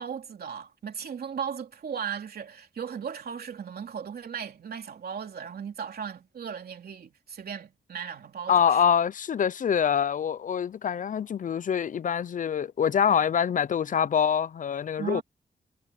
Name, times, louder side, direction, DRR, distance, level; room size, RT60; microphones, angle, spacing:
voice 1, 0.0-8.8 15.0-15.2, right 7 dB, 85° right, 3.1 m, -37 dB
voice 2, 8.5-15.2, left 8 dB, 55° left, 0.5 m, -25 dB
wide cardioid pair, 135°, 16 cm